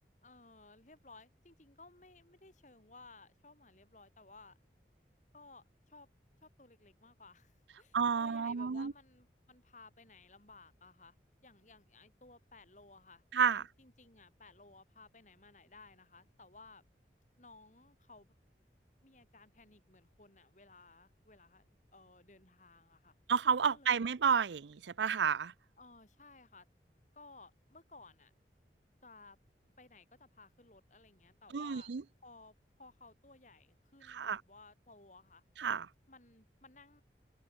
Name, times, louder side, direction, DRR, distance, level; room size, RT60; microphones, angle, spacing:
voice 1, 0.2-4.6 5.3-6.1 6.4-11.2 11.4-13.2 13.5-16.8 17.4-18.3 19.0-21.7 21.9-23.2 23.7-24.1 25.8-26.7 27.1-28.3 29.0-29.4 29.8-31.9 32.2-35.4 36.1-37.0, left 3 dB, 45° left, 4.0 m, -58 dB
voice 2, 7.9-8.9 13.3-13.6 23.3-25.5 31.5-32.0 34.1-34.4 35.6-35.9, right 6 dB, 85° right, 0.5 m, -31 dB
head